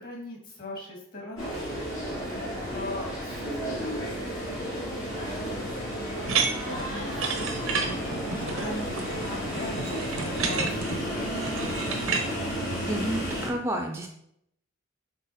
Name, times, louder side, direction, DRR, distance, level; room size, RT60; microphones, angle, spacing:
voice 1, 0.0-1.6 2.7-4.0 4.3-11.6, left 1 dB, 45° left, -1 dB, 2.0 m, -40 dB
sound 1, 1.4-13.5, equal, 70° left, 2.7 m, -32 dB
sound 2, 6.2-12.2, right 5 dB, 90° right, 1.0 m, -31 dB
voice 2, 12.6-14.1, right 1 dB, 10° right, 3 dB, 0.5 m, -31 dB
6.1 x 3.9 x 4.3 m, 0.72 s
head